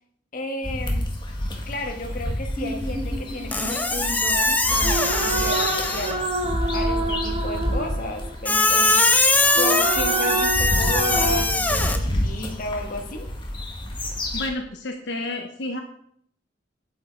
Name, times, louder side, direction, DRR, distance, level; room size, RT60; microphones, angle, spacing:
voice 1, 0.3-1.0 1.7-6.2 6.7-9.2 9.6-13.3, left 1 dB, 50° left, 3 dB, 1.5 m, -33 dB
sound 1, 0.6-14.5, left 1 dB, 25° left, 1.6 m, -29 dB
sound 2, 2.6-4.1 4.7-8.5 9.4-11.4, right 2 dB, 35° right, 1.0 m, -28 dB
Squeak, 3.5-6.3 8.4-12.0, left 2 dB, 10° left, 0.8 m, -21 dB
voice 2, 14.3-15.8, left 2 dB, 75° left, 3 dB, 0.9 m, -30 dB
8.5 x 8.5 x 4.5 m, 0.67 s
head